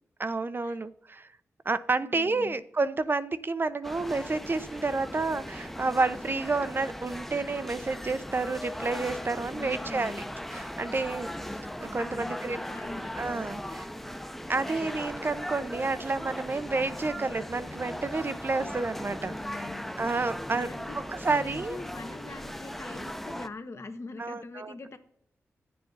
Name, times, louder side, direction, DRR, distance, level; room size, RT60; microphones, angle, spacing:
voice 1, 0.2-1.3 1.6-10.2 10.5-11.3 11.8-12.6 13.2-13.8 14.5-19.3 20.0-20.7 21.1-21.8 24.2-24.7, right 3 dB, 40° right, 14 dB, 0.7 m, -30 dB
voice 2, 2.0-2.6 9.5-10.3 12.1-13.1 13.7-13.8 19.2-19.9 20.5-21.0 21.4-25.0, left 3 dB, 60° left, 8 dB, 1.3 m, -43 dB
sound 1, 3.8-23.5, equal, 5° left, 0.8 m, -38 dB
10.5 x 7.6 x 4.0 m, 0.74 s
cardioid pair, 45°, 5 cm